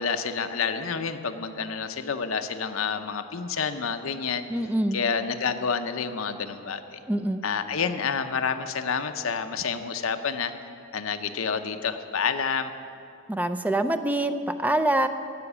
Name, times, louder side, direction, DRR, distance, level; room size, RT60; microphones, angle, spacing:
voice 1, 0.0-4.5 4.9-7.0 7.4-10.5 10.9-12.7, left 6 dB, 80° left, 8 dB, 0.8 m, -29 dB
voice 2, 4.5-5.0 7.1-7.4 13.3-15.1, right 1 dB, 10° right, 9 dB, 0.4 m, -25 dB
15.5 x 5.9 x 9.8 m, 2.6 s
head